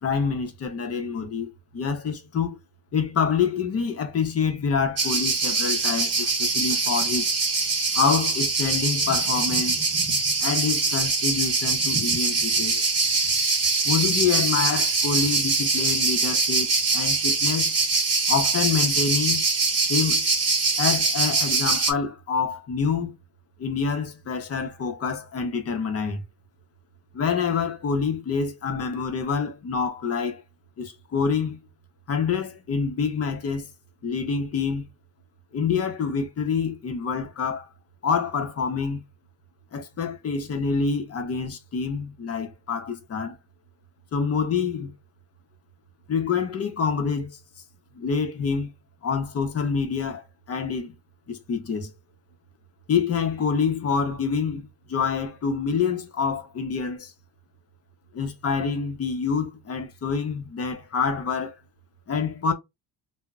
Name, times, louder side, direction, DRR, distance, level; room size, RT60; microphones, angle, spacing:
voice 1, 0.0-2.6 2.9-7.3 7.9-9.8 10.4-12.8 13.8-17.7 18.3-19.4 19.9-20.3 20.8-23.2 23.6-26.2 27.1-30.4 30.8-31.6 32.1-33.7 34.0-34.9 35.5-37.7 38.0-39.0 39.7-43.4 44.1-44.9 46.1-47.4 47.9-48.7 49.0-50.9 51.3-51.9 52.9-57.1 58.1-61.5 62.1-62.5, left 6 dB, 35° left, 0.6 m, -26 dB
sound 1, 5.0-21.9, right 3 dB, 35° right, 0.8 m, -23 dB
2.1 x 2.0 x 3.4 m
cardioid pair, 120°, 41 cm